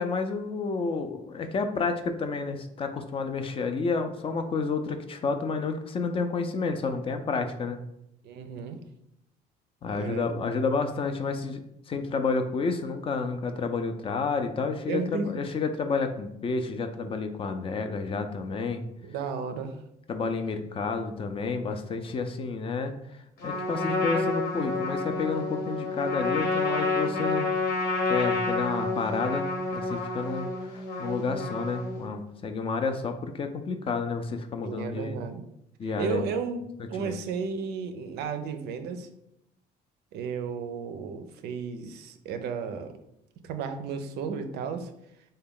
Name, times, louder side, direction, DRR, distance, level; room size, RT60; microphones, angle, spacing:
voice 1, 0.0-7.8 9.8-11.6 11.9-18.8 20.1-22.9 23.4-27.5 28.1-29.4 29.7-35.2 35.8-36.2 37.0-37.2, left 4 dB, 35° left, 6 dB, 0.4 m, -30 dB
voice 2, 8.2-8.8 9.9-10.3 14.9-15.4 19.0-19.8 34.6-35.4 35.8-39.1 40.1-43.0 43.4-44.9, right 5 dB, 75° right, 8 dB, 0.4 m, -33 dB
Trumpet, 23.4-32.1, left 3 dB, 70° left, 1.0 m, -29 dB
3.4 x 2.2 x 3.6 m, 0.78 s
cardioid pair, 110°, 17 cm